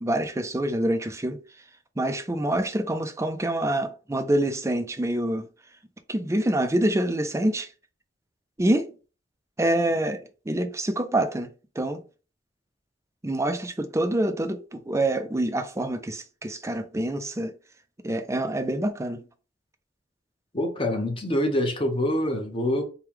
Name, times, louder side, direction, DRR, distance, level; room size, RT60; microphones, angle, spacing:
voice 1, 0.0-1.4 2.0-5.5 6.1-7.7 8.6-8.9 9.6-11.5 11.8-12.0 13.2-17.5 18.0-19.2, right 1 dB, 15° right, 0.5 m, -26 dB
voice 2, 20.5-22.8, left 1 dB, 30° left, 1.0 m, -25 dB
4.5 x 2.3 x 3.5 m
head